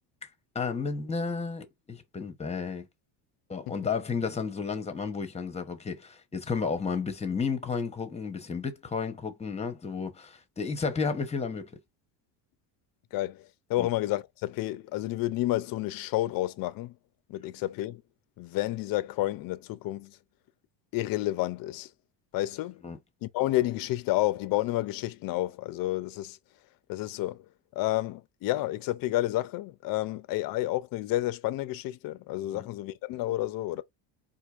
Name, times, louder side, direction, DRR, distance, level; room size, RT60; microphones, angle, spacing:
voice 1, 0.5-2.8 3.5-11.7 13.8-13.9 22.8-23.0 32.5-32.6, left 5 dB, 15° left, 0.8 m, -32 dB
voice 2, 13.1-17.0 17.3-18.0 18.4-20.2 20.9-21.9 22.3-22.8 23.2-26.4 26.9-27.4 27.8-33.8, left 16 dB, 45° left, 0.5 m, -30 dB
4.5 x 2.5 x 2.4 m
cardioid pair, 125°, 49 cm